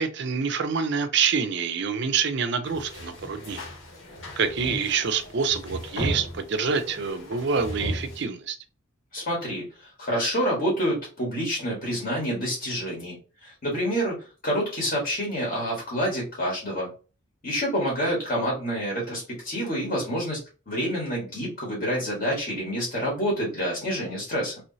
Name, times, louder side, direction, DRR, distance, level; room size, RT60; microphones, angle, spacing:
voice 1, 0.0-3.6 4.4-8.6, right 5 dB, 55° right, 0.5 m, -26 dB
sound 1, 2.6-8.2, equal, 70° left, 1.8 m, -36 dB
voice 2, 9.1-16.9 17.4-24.6, equal, 45° left, 1.5 m, -28 dB
3.1 x 3.0 x 2.7 m
head